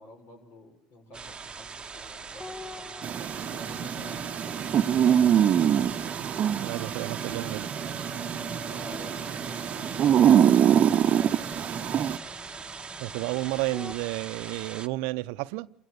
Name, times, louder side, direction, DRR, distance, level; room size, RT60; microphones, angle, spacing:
voice 1, 0.0-3.0 3.5-5.6 8.6-12.6 13.2-13.6, left 1 dB, 60° left, 7.0 m, -49 dB
sound 1, 1.1-14.9, right 5 dB, 25° right, 1.0 m, -41 dB
sound 2, 2.4-14.0, left 3 dB, 30° left, 1.5 m, -46 dB
sound 3, 3.0-12.2, right 9 dB, 45° right, 0.9 m, -24 dB
voice 2, 6.6-7.7 13.0-15.7, right 21 dB, 70° right, 0.7 m, -31 dB
28.5 x 16.0 x 6.6 m
hypercardioid pair, 75°, 4 cm